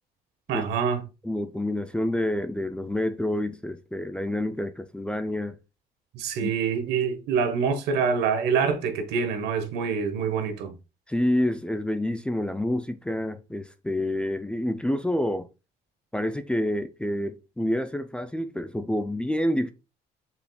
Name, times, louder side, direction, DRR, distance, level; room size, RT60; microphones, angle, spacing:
voice 1, 0.5-1.1 6.1-10.8, right 6 dB, 80° right, 1.2 m, -26 dB
voice 2, 1.2-5.6 6.4-6.5 11.1-15.5 16.1-19.7, left 1 dB, 5° left, 0.4 m, -28 dB
5.7 x 4.1 x 2.3 m
cardioid pair, 110°, 17 cm